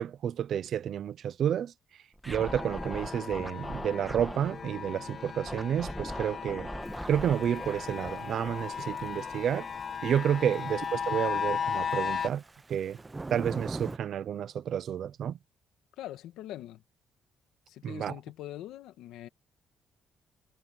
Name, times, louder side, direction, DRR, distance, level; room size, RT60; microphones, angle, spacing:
voice 1, 0.0-1.7 2.3-6.7 7.1-9.7 10.0-12.4 12.7-13.0 13.3-15.4 17.8-18.1, right 9 dB, 65° right, 0.7 m, -30 dB
Scratching (performance technique), 2.2-4.5 5.5-9.8, equal, ahead, 2.1 m, -41 dB
sound 1, 2.4-12.3, left 7 dB, 45° left, 1.5 m, -36 dB
Thunder / Rain, 6.8-14.0, right 3 dB, 20° right, 0.8 m, -44 dB
voice 2, 10.4-10.7 16.0-16.8 17.7-19.3, left 13 dB, 90° left, 2.0 m, -43 dB
cardioid pair, 90°, 0 cm